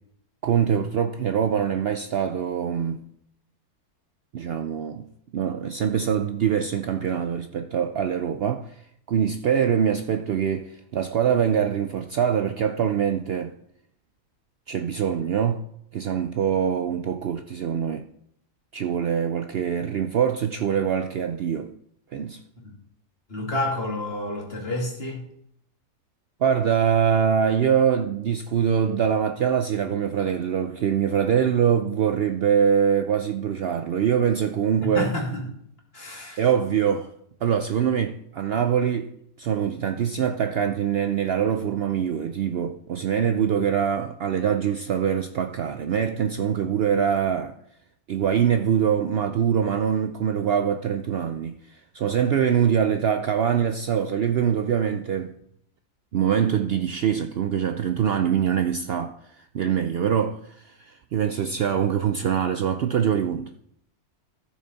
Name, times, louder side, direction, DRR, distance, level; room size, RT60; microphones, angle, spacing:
voice 1, 0.4-3.0 4.3-5.1 5.3-8.8 9.1-13.5 14.7-15.6 15.9-18.1 18.7-21.7 22.1-22.4 26.4-35.1 36.4-37.1 37.4-39.1 39.4-47.6 48.1-55.4 56.1-63.5, right 8 dB, 85° right, 0.5 m, -24 dB
voice 2, 23.3-25.3 34.8-35.6 35.9-36.5, left 1 dB, 40° left, 2.3 m, -29 dB
14.0 x 6.2 x 4.1 m
omnidirectional pair, 1.6 m